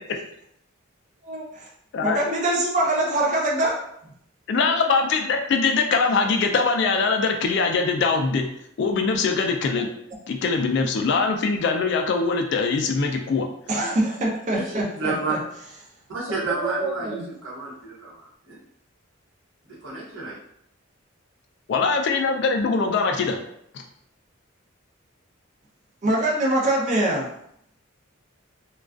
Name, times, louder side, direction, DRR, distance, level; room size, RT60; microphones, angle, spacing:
voice 1, 1.2-1.7 2.0-3.8 4.5-4.7 13.7-15.4 16.3-17.2 26.0-27.3, right 1 dB, 35° right, -2 dB, 0.5 m, -24 dB
voice 2, 4.5-8.5 8.8-9.9 10.3-13.5 21.7-23.4 23.7-23.8, left 4 dB, 55° left, 4 dB, 0.3 m, -22 dB
voice 3, 14.5-15.3 16.1-18.6 19.7-20.3, right 4 dB, 70° right, -5 dB, 0.9 m, -31 dB
2.3 x 2.2 x 2.3 m, 0.71 s
head